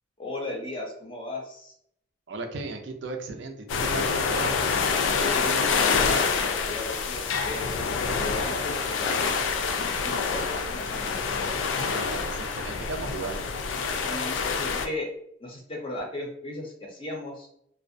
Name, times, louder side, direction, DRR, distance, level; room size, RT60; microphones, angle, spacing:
voice 1, 0.2-1.7 5.2-11.2 14.0-15.1 15.4-17.5, left 2 dB, 30° left, 0 dB, 0.5 m, -36 dB
voice 2, 2.3-4.6 11.9-13.4, right 3 dB, 70° right, 4 dB, 0.5 m, -35 dB
sound 1, 3.7-14.9, left 5 dB, 90° left, 0.4 m, -27 dB
2.4 x 2.0 x 2.6 m, 0.71 s
head